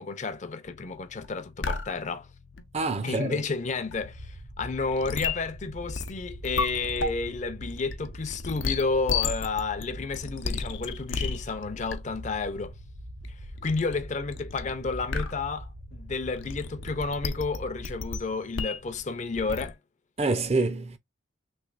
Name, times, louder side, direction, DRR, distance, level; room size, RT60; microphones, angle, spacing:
voice 1, 0.0-2.3 3.0-12.7 13.6-19.8, left 4 dB, 40° left, 0.5 m, -31 dB
sound 1, 0.7-19.7, left 4 dB, 80° left, 0.7 m, -36 dB
voice 2, 2.7-3.4 20.2-21.0, right 3 dB, 35° right, 0.6 m, -26 dB
sound 2, 4.0-18.2, right 1 dB, 75° right, 0.9 m, -43 dB
3.2 x 3.2 x 2.4 m
head